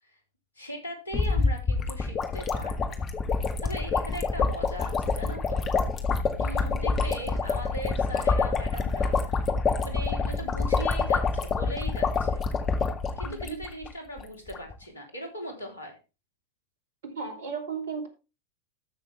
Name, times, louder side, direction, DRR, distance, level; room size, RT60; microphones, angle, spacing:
voice 1, 0.5-3.0 3.4-5.6 6.4-9.5 9.8-12.4 13.2-16.0, equal, 75° left, 3 dB, 3.4 m, -39 dB
sound 1, 1.1-13.9 14.2-14.3 14.5-14.7, left 4 dB, 25° left, 1.8 m, -27 dB
voice 2, 13.2-13.6 17.0-18.1, right 5 dB, 60° right, 6 dB, 3.0 m, -35 dB
13.5 x 6.3 x 3.4 m, 0.28 s
figure-of-eight pair, 90°, 0 cm